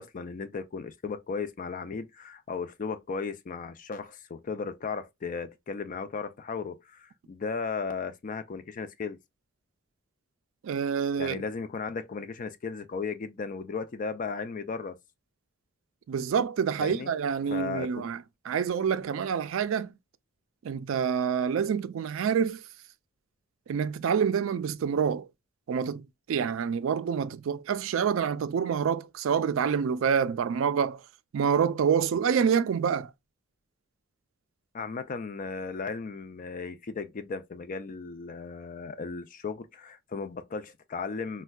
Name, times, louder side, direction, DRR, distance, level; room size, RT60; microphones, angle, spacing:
voice 1, 0.0-9.2 11.2-15.0 16.8-17.1 17.5-18.1 34.7-41.4, left 5 dB, 40° left, 0.4 m, -36 dB
voice 2, 10.6-11.4 16.1-18.2 18.5-19.9 20.6-22.6 23.7-25.3 25.7-31.0 31.3-33.1, right 7 dB, 65° right, 0.3 m, -27 dB
4.3 x 2.2 x 2.2 m
head